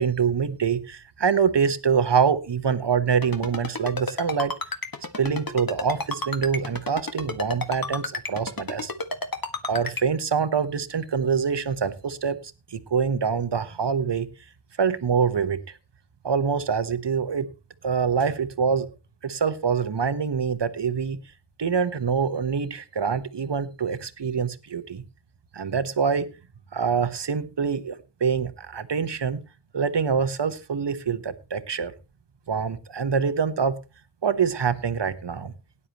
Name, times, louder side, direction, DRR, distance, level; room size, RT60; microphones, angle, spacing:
voice 1, 0.0-4.5 5.2-8.9 9.6-12.4 12.7-14.3 14.8-15.8 16.2-17.5 17.8-18.9 19.2-21.2 21.6-25.0 25.5-26.3 26.7-29.4 29.7-31.9 32.5-33.8 34.2-35.5, right 6 dB, 60° right, 12 dB, 1.1 m, -25 dB
Ringtone, 3.2-10.0, left 3 dB, 45° left, 1.6 m, -30 dB
18.0 x 9.8 x 3.0 m, 0.29 s
wide cardioid pair, 60°, 48 cm